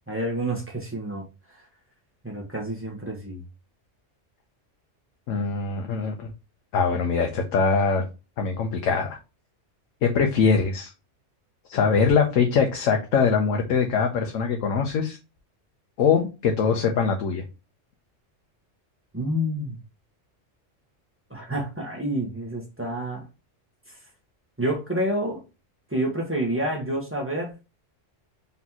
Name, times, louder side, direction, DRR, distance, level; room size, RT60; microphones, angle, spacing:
voice 1, 0.1-1.2 2.2-3.4 19.1-19.8 21.3-23.2 24.6-25.4 25.9-27.6, right 1 dB, 10° right, 1.1 m, -28 dB
voice 2, 5.3-6.3 6.7-8.0 8.4-9.2 10.0-10.9 11.7-15.2 16.0-17.4, left 5 dB, 90° left, 1.1 m, -22 dB
4.2 x 3.5 x 2.8 m
omnidirectional pair, 1.3 m